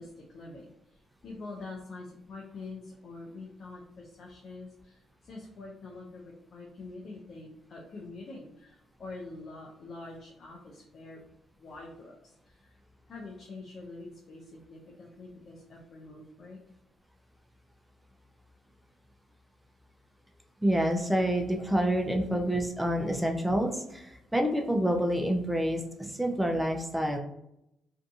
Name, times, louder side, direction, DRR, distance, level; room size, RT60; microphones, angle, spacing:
voice 1, 0.0-11.2 11.6-12.7 13.1-16.6, left 3 dB, 55° left, -3 dB, 0.5 m, -45 dB
voice 2, 20.6-27.2, equal, 5° right, 2 dB, 0.4 m, -28 dB
2.6 x 2.5 x 2.4 m, 0.83 s
cardioid pair, 90°, 0 cm